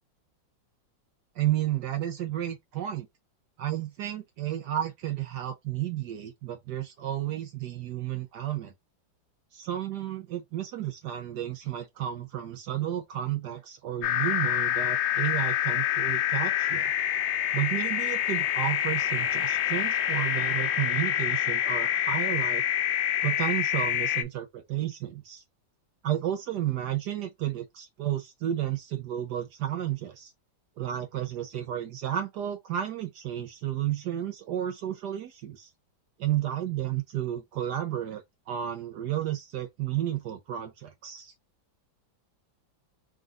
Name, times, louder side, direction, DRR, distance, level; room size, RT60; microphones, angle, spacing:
voice 1, 1.3-3.1 3.6-8.7 9.5-16.9 17.5-22.6 23.2-25.4 26.0-30.3 30.8-35.7 36.2-41.3, right 12 dB, 65° right, 1.1 m, -32 dB
sound 1, 14.0-24.2, left 11 dB, 80° left, 1.3 m, -27 dB
3.8 x 3.6 x 2.4 m
omnidirectional pair, 2.1 m